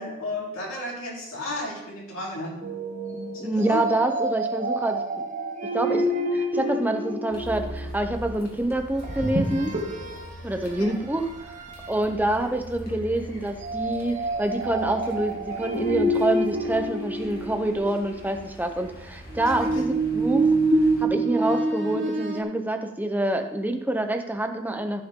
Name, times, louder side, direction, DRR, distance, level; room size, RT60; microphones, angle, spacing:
voice 1, 0.0-2.5 3.4-3.8 10.8-10.9 19.5-19.8, left 1 dB, 75° left, -4 dB, 3.7 m, -33 dB
sound 1, 2.6-7.9 9.0-10.3 10.7-10.9 11.5-12.0 13.6-18.0 19.3-22.4, right 2 dB, 35° right, 1.1 m, -27 dB
voice 2, 3.4-5.0 5.7-6.0 6.3-9.7 10.4-20.6 21.0-25.0, right 1 dB, 10° right, 5 dB, 0.7 m, -27 dB
Car, 7.3-21.1, equal, 45° left, 2.2 m, -42 dB
15.0 x 5.9 x 3.7 m, 0.91 s
head